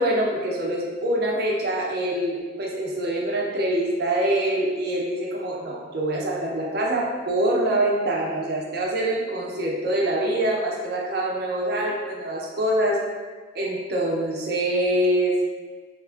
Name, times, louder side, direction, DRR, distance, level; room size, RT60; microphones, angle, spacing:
voice 1, 0.0-13.0 13.5-15.3, right 1 dB, 55° right, -2 dB, 0.5 m, -25 dB
2.8 x 2.4 x 2.3 m, 1.4 s
head